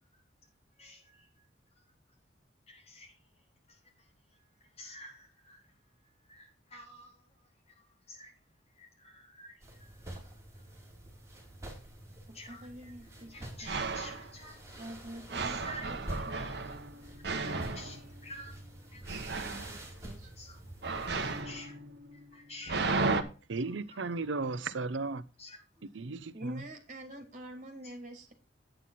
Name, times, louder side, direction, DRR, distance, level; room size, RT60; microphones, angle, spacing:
voice 1, 0.8-1.5 1.7-1.8 2.7-3.2 3.7-5.7 6.0-8.3 8.8-10.2 12.3-14.9 15.4-19.3 20.4-20.6 20.9-21.8 22.1-23.4 23.9-24.0 25.4-25.6, left 1 dB, 35° left, 4.0 m, -51 dB
sound 1, 9.6-21.4, right 1 dB, 15° right, 3.3 m, -47 dB
voice 2, 12.5-13.3 13.6-13.7 14.8-16.0 16.3-16.4 19.3-20.3 26.3-28.3, right 1 dB, 40° right, 2.8 m, -46 dB
sound 2, 13.2-13.3 13.6-14.3 15.3-18.6 19.1-19.8 20.8-23.2, right 3 dB, 60° right, 1.1 m, -34 dB
voice 3, 23.5-25.2 25.9-26.6, right 3 dB, 85° right, 0.7 m, -35 dB
9.3 x 9.0 x 4.1 m
head